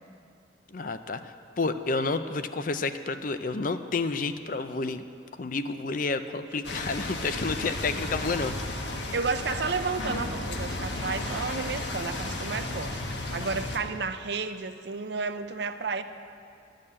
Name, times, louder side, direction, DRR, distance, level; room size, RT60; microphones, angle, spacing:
voice 1, 0.7-5.1 5.4-8.5, left 3 dB, 45° left, 10 dB, 0.5 m, -30 dB
sound 1, 6.6-13.8, left 2 dB, 75° left, 1.4 m, -34 dB
voice 2, 9.1-13.0 13.3-16.0, right 4 dB, 65° right, 10 dB, 0.6 m, -32 dB
12.5 x 6.5 x 9.8 m, 2.4 s
head